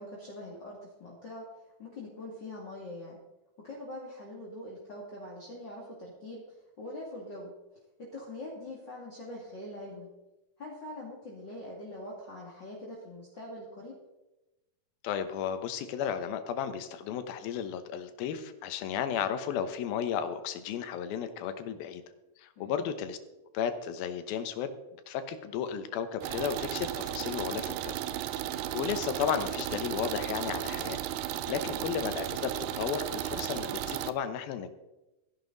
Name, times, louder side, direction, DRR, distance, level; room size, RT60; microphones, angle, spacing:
voice 1, 0.0-1.4 1.8-3.2 3.6-7.5 8.0-10.1 10.6-13.9 22.6-22.9 31.6-31.8, left 1 dB, 35° left, -4 dB, 2.5 m, -43 dB
voice 2, 15.0-22.0 22.4-23.2 23.5-24.7 25.1-28.0 28.7-31.0 31.5-34.7, left 8 dB, 90° left, 10 dB, 2.9 m, -34 dB
sound 1, 26.2-34.1, right 12 dB, 85° right, 2.4 m, -35 dB
15.0 x 11.0 x 4.0 m, 0.99 s
omnidirectional pair, 4.1 m